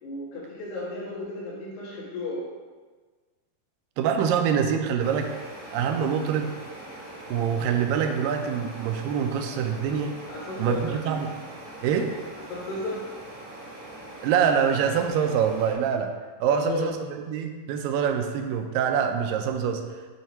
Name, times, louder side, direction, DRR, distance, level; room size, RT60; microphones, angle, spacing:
voice 1, 0.0-2.4 10.3-11.2 12.5-13.0 16.5-16.9, left 2 dB, 80° left, -7 dB, 3.3 m, -34 dB
voice 2, 4.0-5.3 5.7-6.5 7.3-10.1 10.6-11.3 11.8-12.1 14.2-16.1 16.4-19.8, right 7 dB, 85° right, 5 dB, 2.3 m, -25 dB
sound 1, 5.0-15.7, right 1 dB, 30° right, 1.6 m, -42 dB
7.8 x 2.8 x 4.4 m, 1.4 s
omnidirectional pair, 4.0 m